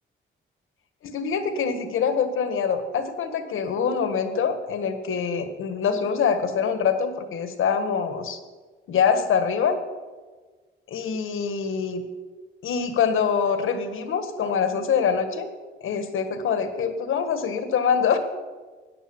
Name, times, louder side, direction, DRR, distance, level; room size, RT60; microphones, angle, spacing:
voice 1, 1.0-8.4 8.9-9.8 10.9-12.0 12.6-15.5 15.8-18.2, left 6 dB, 80° left, 9 dB, 1.6 m, -24 dB
14.0 x 9.8 x 7.1 m, 1.4 s
cardioid pair, 120°, 21 cm